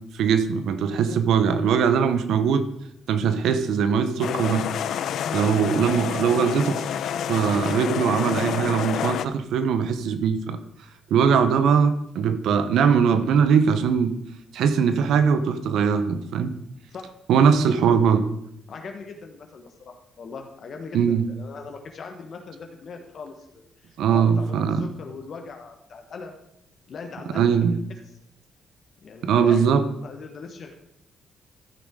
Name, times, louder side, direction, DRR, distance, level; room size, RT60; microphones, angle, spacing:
voice 1, 0.1-2.7 3.1-4.7 5.3-6.8 7.3-10.6 11.1-14.2 14.5-16.5 17.3-18.3 20.9-21.2 24.0-24.9 27.3-27.8 29.2-29.8, right 6 dB, 80° right, 11 dB, 0.8 m, -21 dB
sound 1, 4.2-9.3, left 9 dB, 70° left, 0.5 m, -28 dB
voice 2, 5.2-5.5 16.9-17.1 18.7-26.4 26.9-27.5 29.0-29.6 30.0-30.8, left 4 dB, 55° left, 3 dB, 1.3 m, -39 dB
14.0 x 6.2 x 3.7 m, 0.76 s
cardioid pair, 90°, 0 cm